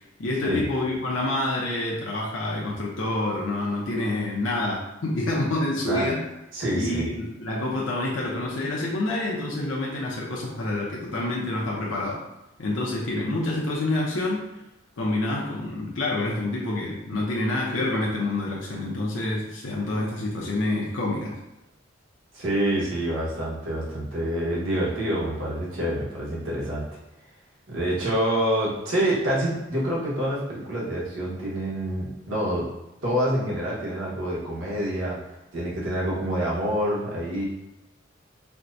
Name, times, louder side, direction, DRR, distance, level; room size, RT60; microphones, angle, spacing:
voice 1, 0.0-6.2 6.7-12.2 12.6-14.5 15.0-21.3, left 2 dB, 75° left, -4 dB, 0.6 m, -27 dB
voice 2, 6.5-7.0 22.3-26.8 27.7-32.7 33.0-35.2 35.5-37.5, right 1 dB, 85° right, -6 dB, 1.2 m, -27 dB
4.4 x 2.2 x 2.6 m, 0.93 s
head